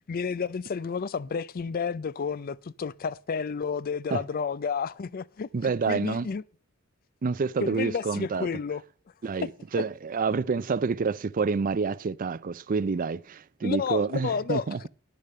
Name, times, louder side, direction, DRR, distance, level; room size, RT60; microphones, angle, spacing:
voice 1, 0.1-6.4 7.6-8.8 9.4-9.5 9.8-9.9 13.6-14.9, left 5 dB, 45° left, 0.4 m, -31 dB
voice 2, 5.5-6.3 7.2-8.5 9.2-14.9, right 4 dB, 40° right, 0.4 m, -28 dB
11.0 x 6.8 x 6.5 m
head